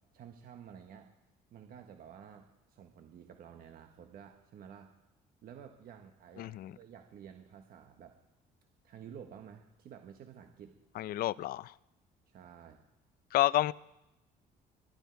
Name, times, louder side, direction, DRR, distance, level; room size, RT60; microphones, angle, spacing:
voice 1, 0.1-1.1 1.5-4.9 5.4-8.2 8.8-10.8 12.3-12.8, right 8 dB, 60° right, 1.3 m, -52 dB
voice 2, 6.4-6.7 11.0-11.7 13.3-13.7, left 15 dB, 65° left, 0.5 m, -29 dB
23.0 x 12.0 x 4.6 m
cardioid pair, 110°, 17 cm